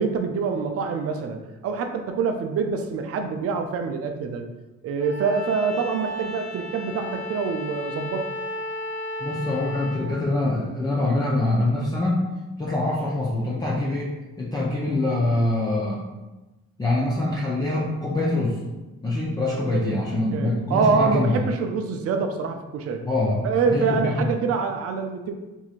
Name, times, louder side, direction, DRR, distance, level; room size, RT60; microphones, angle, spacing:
voice 1, 0.0-4.4 4.8-8.3 19.7-19.9 20.3-23.1 23.4-25.4, right 5 dB, 50° right, 5 dB, 0.4 m, -25 dB
Bowed string instrument, 5.0-10.0, left 1 dB, 60° left, 0.8 m, -33 dB
voice 2, 9.2-12.2 12.6-16.0 16.8-18.6 19.0-21.4 23.0-24.3, left 2 dB, 15° left, -6 dB, 0.5 m, -24 dB
2.9 x 2.7 x 2.4 m, 1.1 s
cardioid pair, 90°, 30 cm